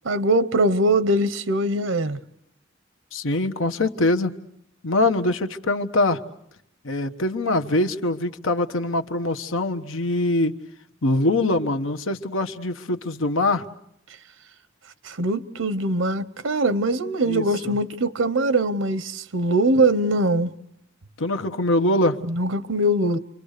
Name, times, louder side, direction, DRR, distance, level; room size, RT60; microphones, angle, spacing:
voice 1, 0.0-2.2 15.0-20.5 22.3-23.2, right 1 dB, 80° right, 0.9 m, -22 dB
voice 2, 3.1-4.3 4.8-6.2 6.8-10.6 11.0-13.6 17.3-17.7 21.2-22.2, left 2 dB, 80° left, 1.2 m, -23 dB
29.5 x 25.0 x 6.7 m
head